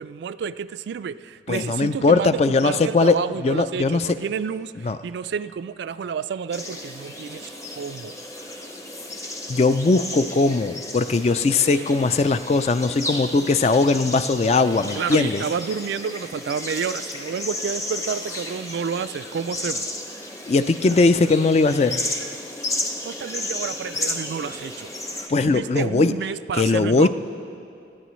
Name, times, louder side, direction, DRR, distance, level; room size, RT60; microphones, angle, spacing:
voice 1, 0.0-7.5 7.8-8.1 15.0-19.8 23.0-24.9 25.4-27.1, right 6 dB, 70° right, 14 dB, 0.3 m, -30 dB
voice 2, 1.5-3.2 3.4-4.1 4.8-5.0 9.5-15.4 20.5-22.0 25.3-26.1 26.5-27.1, left 3 dB, 35° left, 12 dB, 0.3 m, -19 dB
sound 1, 6.5-25.3, left 1 dB, 15° left, 0.7 m, -33 dB
19.5 x 13.5 x 3.1 m, 2.6 s
head